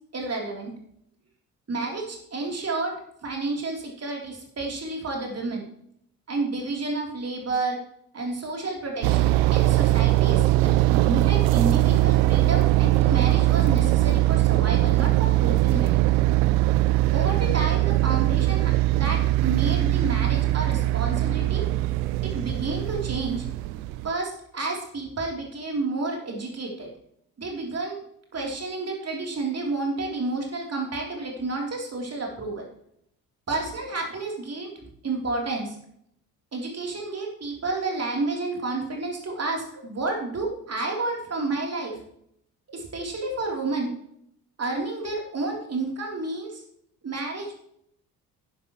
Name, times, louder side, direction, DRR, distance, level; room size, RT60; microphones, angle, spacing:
voice 1, 0.1-0.7 1.7-5.6 6.3-7.8 8.1-16.0 17.1-21.7 22.2-23.4 24.0-26.9 27.4-28.0 28.3-32.7 33.5-35.8 36.5-42.0 42.7-43.9 44.6-46.6 47.0-47.5, right 3 dB, 30° right, 0 dB, 3.4 m, -30 dB
sound 1, 9.0-24.1, right 15 dB, 60° right, 0.7 m, -21 dB
11.0 x 11.0 x 3.1 m, 0.70 s
figure-of-eight pair, 50°, 47 cm